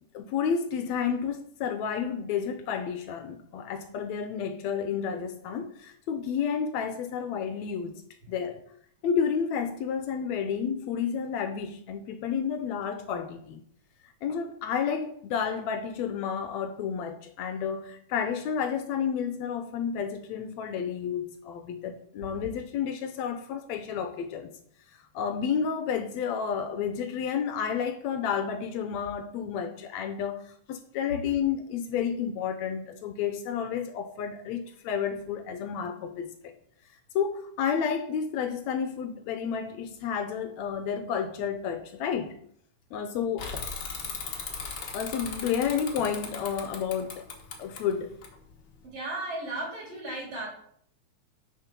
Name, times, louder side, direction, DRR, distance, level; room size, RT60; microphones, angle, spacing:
voice 1, 0.1-8.0 8.3-8.6 9.0-13.6 14.2-24.5 25.1-36.3 37.2-42.4 42.9-43.5 44.8-47.3 47.6-48.1, left 7 dB, 75° left, 1.8 m, -31 dB
Bicycle / Mechanisms, 43.4-48.8, left 5 dB, 50° left, 1.4 m, -38 dB
voice 2, 48.8-50.5, right 2 dB, 50° right, 4.1 m, -35 dB
6.7 x 6.7 x 5.9 m
omnidirectional pair, 3.4 m